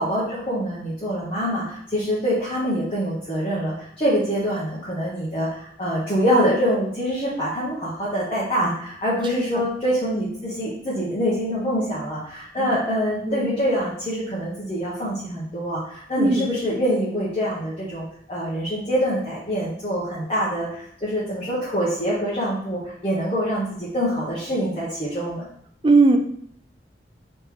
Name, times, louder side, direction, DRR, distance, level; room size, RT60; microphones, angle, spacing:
voice 1, 0.0-25.4, equal, 30° left, -9 dB, 1.1 m, -25 dB
voice 2, 25.8-26.2, right 3 dB, 25° right, 5 dB, 0.4 m, -18 dB
3.6 x 3.2 x 4.5 m, 0.68 s
head